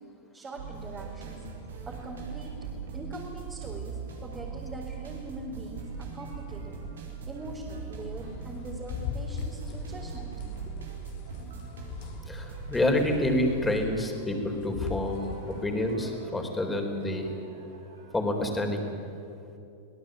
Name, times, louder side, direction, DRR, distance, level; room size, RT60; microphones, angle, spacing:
voice 1, 0.3-1.4 1.8-2.6 2.9-6.8 7.2-10.3, right 1 dB, 20° right, -2 dB, 4.1 m, -42 dB
sound 1, 0.6-18.2, right 5 dB, 85° right, 4.8 m, -41 dB
sound 2, 8.2-16.0, left 7 dB, 55° left, 2.8 m, -41 dB
voice 2, 12.3-17.3 18.1-18.8, left 1 dB, 10° left, 3 dB, 4.2 m, -28 dB
25.5 x 17.5 x 9.1 m, 2.7 s
hypercardioid pair, 110°, 0 cm